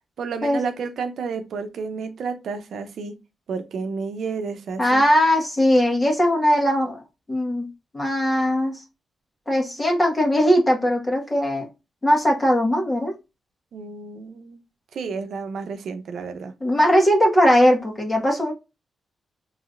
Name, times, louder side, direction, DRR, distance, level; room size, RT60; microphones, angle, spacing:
voice 1, 0.2-3.1 3.5-5.0 13.7-14.6 14.9-16.5, right 5 dB, 80° right, 0.7 m, -31 dB
voice 2, 4.8-7.0 7.3-7.7 7.9-8.8 9.5-11.7 12.0-13.1 16.6-18.5, equal, 20° left, 1.6 m, -19 dB
4.8 x 3.1 x 2.5 m
cardioid pair, 80°, 0 cm